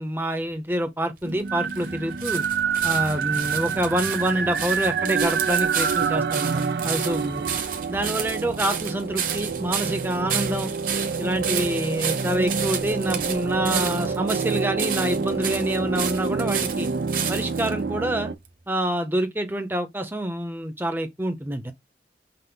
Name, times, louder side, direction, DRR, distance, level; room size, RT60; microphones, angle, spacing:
voice 1, 0.0-2.4 2.8-7.5 7.9-10.7 11.2-16.9 17.3-18.3 18.7-21.7, right 1 dB, 10° right, 0.6 m, -27 dB
sound 1, 1.2-17.7 18.4-18.5, right 8 dB, 50° right, 0.9 m, -32 dB
sound 2, 1.3-18.4, right 5 dB, 65° right, 0.5 m, -27 dB
5.7 x 2.0 x 3.7 m
head